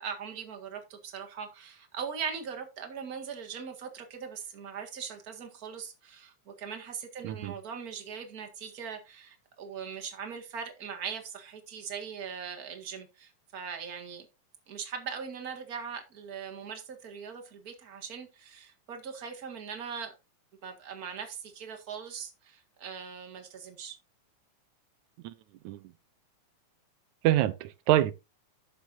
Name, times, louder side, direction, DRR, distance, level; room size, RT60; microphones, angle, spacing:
voice 1, 0.0-14.3 14.7-20.1 20.6-24.0, right 6 dB, 35° right, 1.9 m, -40 dB
voice 2, 27.2-28.1, right 13 dB, 85° right, 2.1 m, -26 dB
11.5 x 7.7 x 2.6 m
omnidirectional pair, 3.4 m